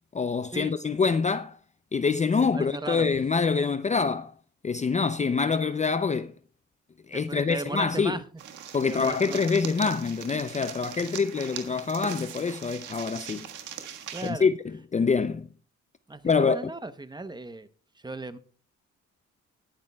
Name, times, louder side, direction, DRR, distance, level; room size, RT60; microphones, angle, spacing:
voice 1, 0.1-1.6 1.9-4.3 4.6-6.3 7.1-8.2 8.7-13.5 14.2-15.5 16.2-16.7, left 5 dB, 25° left, 0.5 m, -25 dB
voice 2, 2.3-3.1 7.1-8.2 8.8-9.4 14.1-14.5 16.1-17.7 18.0-18.4, right 2 dB, 15° right, 0.8 m, -36 dB
sound 1, 8.4-14.3, right 9 dB, 80° right, 1.6 m, -40 dB
19.5 x 10.5 x 2.3 m
cardioid pair, 90°, 30 cm